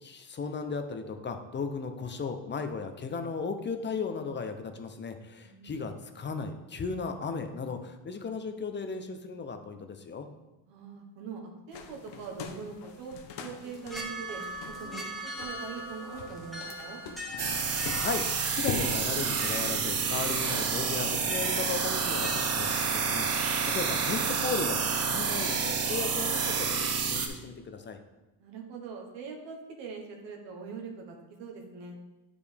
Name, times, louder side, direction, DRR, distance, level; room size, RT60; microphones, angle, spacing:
voice 1, 0.0-10.3 17.6-18.2 18.5-28.0, left 5 dB, 25° left, 7 dB, 0.6 m, -36 dB
voice 2, 5.4-5.8 10.7-11.4 11.7-14.4 14.8-17.0 28.4-32.0, right 5 dB, 75° right, 1 dB, 1.4 m, -42 dB
sound 1, 11.7-18.9, left 7 dB, 65° left, 0.9 m, -42 dB
sound 2, 13.4-27.0, equal, ahead, 1.1 m, -43 dB
sound 3, 17.4-27.3, right 5 dB, 35° right, 0.9 m, -29 dB
9.2 x 5.1 x 3.4 m, 1.0 s
cardioid pair, 115°, 44 cm